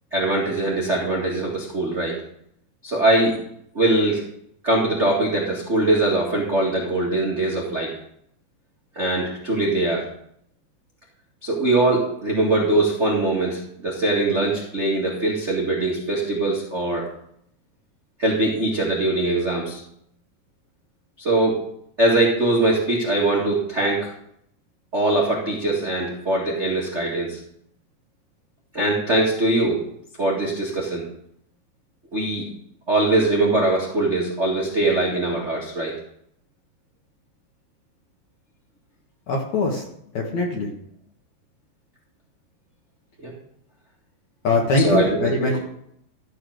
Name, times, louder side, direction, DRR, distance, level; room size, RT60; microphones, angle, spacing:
voice 1, 0.1-2.2 2.8-3.4 3.7-4.2 4.6-7.9 8.9-10.0 11.4-17.1 18.2-19.8 21.2-21.6 22.0-24.1 24.9-27.4 28.7-29.8 30.2-31.1 32.1-32.4 32.9-36.0 43.2-43.3 44.8-45.6, right 2 dB, 55° right, -4 dB, 0.7 m, -22 dB
voice 2, 39.3-39.8 40.1-40.7 44.4-45.6, left 3 dB, 55° left, 0 dB, 2.2 m, -22 dB
14.0 x 5.5 x 6.4 m, 0.71 s
omnidirectional pair, 5.0 m